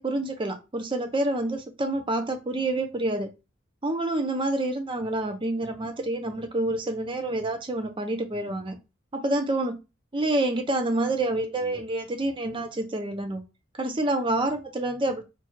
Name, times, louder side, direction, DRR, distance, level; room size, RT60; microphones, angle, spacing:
voice 1, 0.0-3.3 3.8-8.8 9.1-9.8 10.1-13.4 13.8-15.2, right 2 dB, 25° right, 0.6 m, -28 dB
4.4 x 2.4 x 3.0 m
head